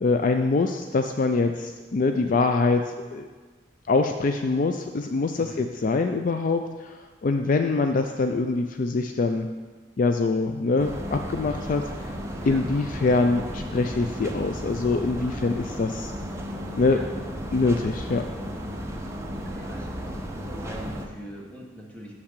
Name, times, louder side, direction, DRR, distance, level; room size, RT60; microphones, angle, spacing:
voice 1, 0.0-3.3 3.9-9.5 10.0-12.1 12.5-16.1 16.8-17.0 17.5-18.2, left 3 dB, 45° left, 6 dB, 0.4 m, -24 dB
voice 2, 5.3-5.6 12.4-12.7 16.9-17.1 19.3-20.2 20.5-22.1, equal, 10° left, -2 dB, 1.3 m, -42 dB
sound 1, 10.8-21.1, equal, 15° right, 0.7 m, -34 dB
6.5 x 5.8 x 6.6 m, 1.4 s
head